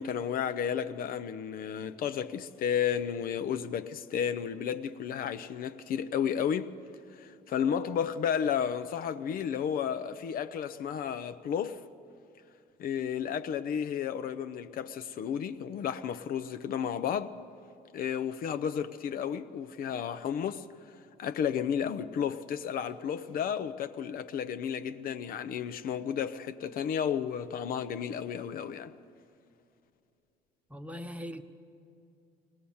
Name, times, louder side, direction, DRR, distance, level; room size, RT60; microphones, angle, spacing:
voice 1, 0.0-6.7 7.2-11.8 12.8-17.4 17.9-20.7 21.2-28.9, left 8 dB, 60° left, 0.7 m, -32 dB
voice 2, 30.7-31.4, equal, 10° right, 0.9 m, -40 dB
20.5 x 18.5 x 7.1 m
cardioid pair, 110°, 17 cm